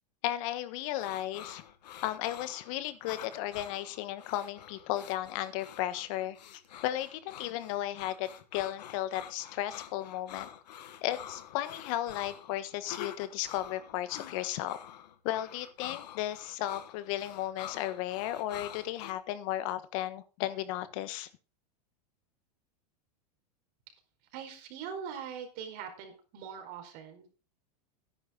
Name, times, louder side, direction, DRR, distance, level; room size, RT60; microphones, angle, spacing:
voice 1, 0.2-1.6 2.0-10.5 11.0-14.8 15.2-21.3, left 14 dB, 55° left, 13 dB, 1.5 m, -35 dB
sound 1, 1.0-19.1, left 11 dB, 85° left, 1.7 m, -47 dB
voice 2, 24.3-27.3, right 7 dB, 45° right, 5 dB, 4.7 m, -42 dB
13.0 x 11.0 x 4.0 m, 0.34 s
supercardioid pair, 140°, 21 cm